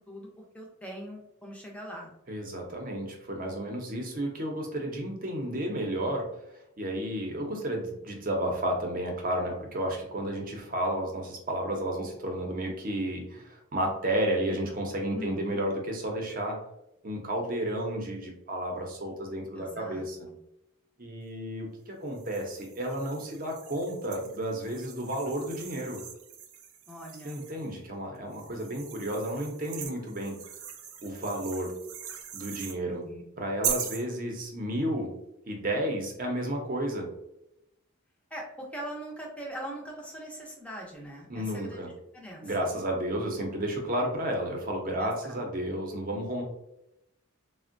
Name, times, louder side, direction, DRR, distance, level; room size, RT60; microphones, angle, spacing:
voice 1, 0.5-2.1 15.1-15.6 19.6-20.4 26.9-27.4 32.9-33.2 38.3-41.8 42.1-42.7 45.0-45.4, equal, 5° left, -1 dB, 0.5 m, -41 dB
voice 2, 2.3-6.3 6.8-16.6 17.0-20.2 21.0-26.0 27.2-30.4 31.0-31.7 32.3-33.0 33.4-35.1 35.5-37.1 41.3-41.9 42.4-46.4, right 1 dB, 40° right, 1 dB, 0.6 m, -32 dB
sound 1, 22.1-27.7 28.3-32.8 33.6-34.1, right 8 dB, 85° right, 0.4 m, -40 dB
3.5 x 2.1 x 2.5 m, 0.82 s
head